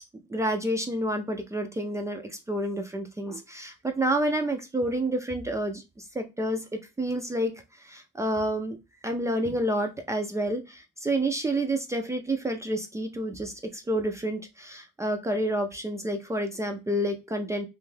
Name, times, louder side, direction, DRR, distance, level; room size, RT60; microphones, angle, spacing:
voice 1, 0.3-6.6 7.0-8.8 9.0-17.7, right 1 dB, 15° right, 0.4 m, -29 dB
2.6 x 2.2 x 3.1 m
cardioid pair, 90°, 20 cm